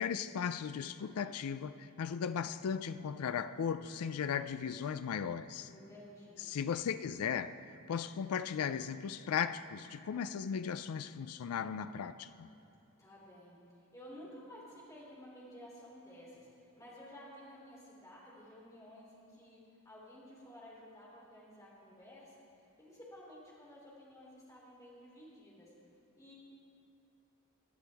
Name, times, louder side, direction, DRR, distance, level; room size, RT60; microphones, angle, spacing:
voice 1, 0.0-5.7 6.4-7.5 7.9-12.5, left 7 dB, 90° left, 12 dB, 0.4 m, -36 dB
voice 2, 5.6-6.5 13.0-22.4 22.8-25.7 26.1-26.3, equal, 15° left, -5 dB, 3.2 m, -54 dB
20.0 x 11.5 x 3.5 m, 2.7 s
head